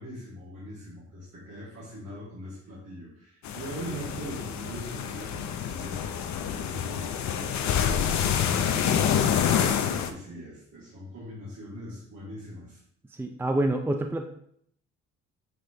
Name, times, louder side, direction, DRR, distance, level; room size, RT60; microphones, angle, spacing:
voice 1, 0.0-12.8, equal, 60° right, -8 dB, 2.5 m, -41 dB
sound 1, 3.4-10.1, left 8 dB, 65° left, 0.7 m, -27 dB
voice 2, 13.2-14.3, right 1 dB, 10° right, 5 dB, 0.5 m, -27 dB
7.8 x 3.3 x 3.9 m, 0.66 s
cardioid pair, 90°, 30 cm